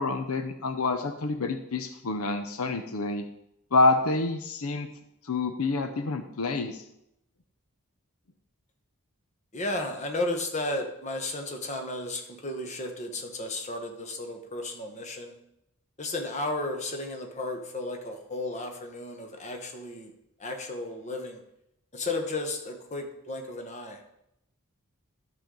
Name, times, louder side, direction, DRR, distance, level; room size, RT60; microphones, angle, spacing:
voice 1, 0.0-3.2 3.7-4.9 5.2-6.8, left 3 dB, 80° left, 8 dB, 0.7 m, -27 dB
voice 2, 9.5-15.4 16.0-20.1 20.4-21.4 21.9-24.0, left 2 dB, 30° left, 4 dB, 1.1 m, -34 dB
12.0 x 6.9 x 3.8 m, 0.80 s
head